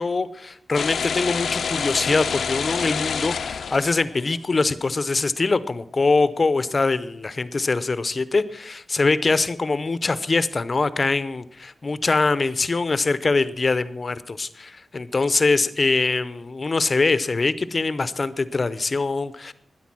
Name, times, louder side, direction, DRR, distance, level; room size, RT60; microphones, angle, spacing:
voice 1, 0.0-19.5, left 3 dB, 35° left, 15 dB, 0.6 m, -23 dB
sound 1, 0.7-4.4, left 6 dB, 85° left, 0.6 m, -27 dB
12.5 x 10.0 x 6.1 m, 0.70 s
wide cardioid pair, 130°, 0 cm